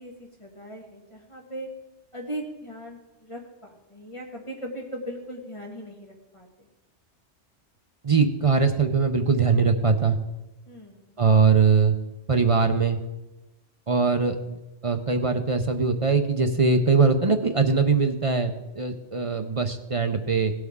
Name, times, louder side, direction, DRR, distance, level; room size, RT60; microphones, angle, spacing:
voice 1, 0.0-1.7 2.1-6.7 10.7-11.1, right 1 dB, 25° left, 0 dB, 1.5 m, -39 dB
voice 2, 8.0-10.2 11.2-11.9 12.3-13.0 13.9-14.6 14.8-20.5, right 4 dB, 35° right, 6 dB, 0.6 m, -21 dB
17.0 x 8.0 x 3.6 m, 1.0 s
omnidirectional pair, 1.2 m